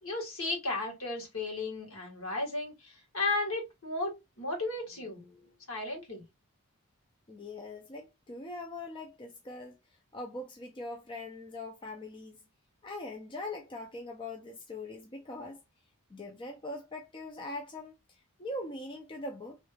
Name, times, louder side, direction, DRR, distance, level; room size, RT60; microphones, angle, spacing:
voice 1, 0.0-5.3 5.7-6.2, left 2 dB, 65° left, 1.6 m, -34 dB
voice 2, 7.3-9.8 10.1-12.4 12.8-15.6 16.1-17.9 18.4-19.6, left 2 dB, 25° left, 0.4 m, -41 dB
3.0 x 2.4 x 3.2 m
head